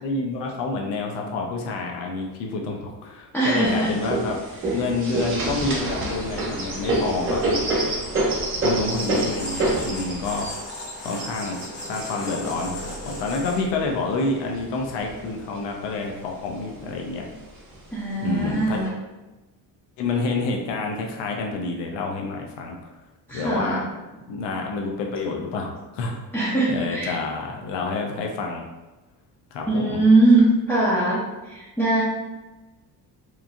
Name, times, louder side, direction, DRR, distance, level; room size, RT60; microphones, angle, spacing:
voice 1, 0.0-4.4 4.7-7.6 8.6-10.5 11.0-17.3 18.2-18.8 20.0-23.0 23.3-23.8 24.3-26.2 26.7-28.6 29.5-30.0, left 3 dB, 90° left, 1 dB, 0.6 m, -28 dB
voice 2, 3.3-3.9 17.9-18.9 23.3-23.8 26.3-27.2 29.7-32.0, right 2 dB, 5° left, -8 dB, 0.4 m, -21 dB
sound 1, 3.6-13.9 14.5-15.5 15.9-16.0 16.3-17.0 17.7-17.8 18.4-18.9, right 1 dB, 30° right, 0.8 m, -27 dB
sound 2, 5.8-13.6, left 1 dB, 50° left, 0.8 m, -38 dB
3.0 x 2.5 x 2.4 m, 1.1 s
cardioid pair, 140°, 41 cm